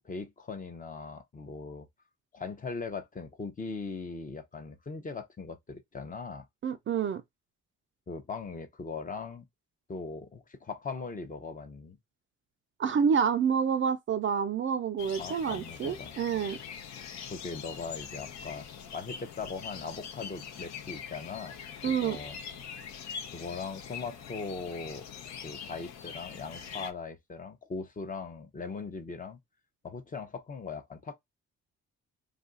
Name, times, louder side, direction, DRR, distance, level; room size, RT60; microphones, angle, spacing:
voice 1, 0.0-1.9 2.3-6.5 8.1-9.4 9.9-12.0 15.2-16.5 17.3-18.7 18.9-21.6 21.8-22.4 23.3-25.0 25.4-29.4 29.8-31.1, left 4 dB, 25° left, 0.7 m, -40 dB
voice 2, 6.6-7.2 12.8-16.6 21.8-22.2, right 7 dB, 40° right, 0.4 m, -28 dB
sound 1, 15.0-26.9, left 7 dB, 65° left, 0.7 m, -43 dB
2.5 x 2.3 x 3.8 m
cardioid pair, 90°, 30 cm